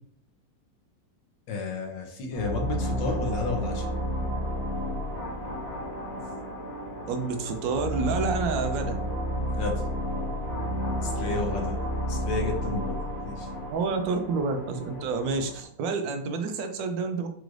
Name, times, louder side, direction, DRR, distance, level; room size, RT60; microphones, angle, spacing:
voice 1, 1.5-3.9 9.5-9.8 11.0-11.8 12.1-13.6, left 3 dB, 85° left, 2 dB, 1.6 m, -32 dB
sound 1, 2.3-15.6, equal, 55° left, 1.6 m, -31 dB
voice 2, 7.1-9.0 9.6-9.7 11.2-11.5 13.7-17.3, right 4 dB, 85° right, 6 dB, 1.3 m, -29 dB
4.9 x 2.5 x 3.1 m, 0.64 s
omnidirectional pair, 2.0 m